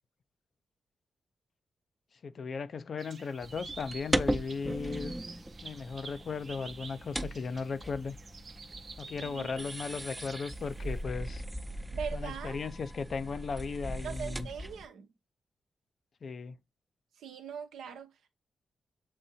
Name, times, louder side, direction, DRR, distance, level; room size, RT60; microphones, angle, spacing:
voice 1, 2.2-5.2 5.6-8.2 9.0-11.4 12.1-14.5 16.2-16.6, left 5 dB, 60° left, 0.5 m, -36 dB
sound 1, 3.0-11.0, right 4 dB, 55° right, 0.7 m, -49 dB
sound 2, 3.4-14.9, right 1 dB, 15° right, 0.4 m, -38 dB
voice 2, 11.9-12.6 14.0-15.1 17.2-18.3, right 7 dB, 90° right, 0.7 m, -41 dB
7.2 x 2.6 x 2.7 m
cardioid pair, 55°, 0 cm